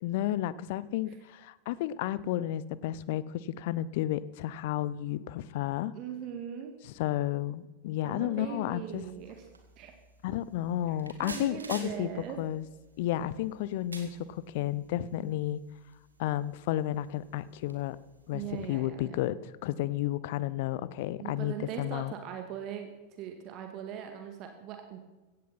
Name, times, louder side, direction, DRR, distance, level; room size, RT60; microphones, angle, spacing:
voice 1, 0.0-5.9 6.8-9.0 10.2-12.1 12.4-12.6 13.0-15.6 16.2-18.0 18.3-22.1, left 13 dB, 50° left, 18 dB, 0.7 m, -32 dB
voice 2, 5.9-6.7 8.0-9.4 9.8-9.9 10.9-12.4 18.3-19.2 21.2-22.9 23.2-25.0, right 9 dB, 40° right, 5 dB, 2.0 m, -40 dB
sound 1, 8.8-18.8, right 3 dB, 75° right, 2.3 m, -52 dB
17.0 x 15.5 x 4.3 m, 1.1 s
figure-of-eight pair, 90°, 0 cm